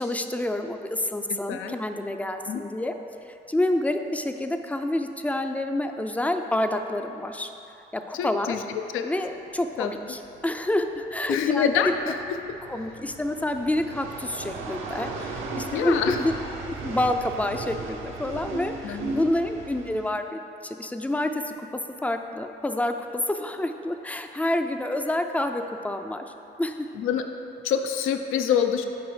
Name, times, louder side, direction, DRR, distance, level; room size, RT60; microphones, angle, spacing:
voice 1, 0.0-3.0 3.5-7.5 7.9-8.6 9.0-11.7 12.7-16.3 16.8-21.7 22.0-22.9 23.3-26.2 26.6-26.9, left 1 dB, 5° left, 6 dB, 0.4 m, -28 dB
voice 2, 1.3-1.7 2.5-2.6 8.1-9.1 9.8-9.9 11.3-12.1 15.7-16.2 18.8-19.2 26.9-27.2 27.6-28.8, left 8 dB, 75° left, 6 dB, 0.5 m, -26 dB
sound 1, 9.3-20.1, right 3 dB, 75° right, 0.8 m, -37 dB
8.0 x 4.5 x 3.2 m, 2.8 s
supercardioid pair, 65°, 21 cm